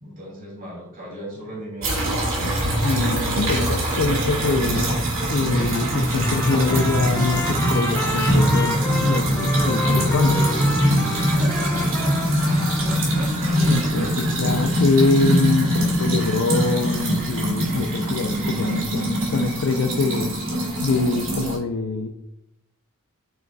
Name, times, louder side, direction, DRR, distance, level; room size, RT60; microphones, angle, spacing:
voice 1, 0.0-2.0 10.8-11.2 13.9-14.1, right 1 dB, 40° right, -4 dB, 2.9 m, -36 dB
sound 1, 1.8-21.6, equal, 60° right, 2.6 m, -22 dB
voice 2, 2.8-5.0 5.3-10.4 13.7-20.4 20.8-22.1, left 3 dB, 60° left, 5 dB, 0.5 m, -24 dB
sound 2, 5.5-18.9, right 1 dB, 80° right, 1.8 m, -37 dB
Trumpet, 6.2-13.1, left 2 dB, 10° left, 0.7 m, -30 dB
8.8 x 6.4 x 2.3 m, 0.80 s
head